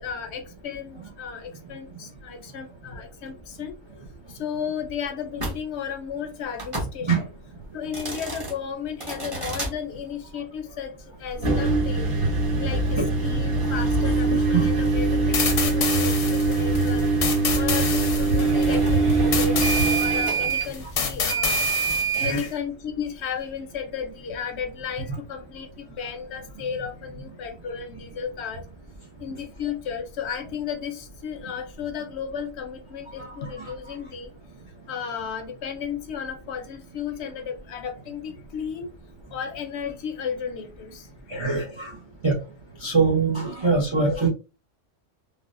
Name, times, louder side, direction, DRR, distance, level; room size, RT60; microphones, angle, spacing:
voice 1, 0.0-3.8 4.3-7.3 7.7-12.1 12.6-17.1 17.5-21.6 22.2-28.6 29.2-34.3 34.9-39.0 39.3-41.1, left 7 dB, 65° left, 6 dB, 0.8 m, -34 dB
sound 1, 5.4-5.6 6.5-6.9 7.8-8.5 9.0-9.7 11.3-22.3, right 3 dB, 30° right, 0.8 m, -23 dB
sound 2, 15.3-22.5, left 6 dB, 85° left, 1.1 m, -28 dB
voice 2, 22.1-22.5 33.6-33.7 41.3-41.9 42.2-42.4 42.8-44.3, right 4 dB, 45° right, -1 dB, 0.3 m, -23 dB
3.3 x 2.0 x 2.4 m, 0.31 s
omnidirectional pair, 1.3 m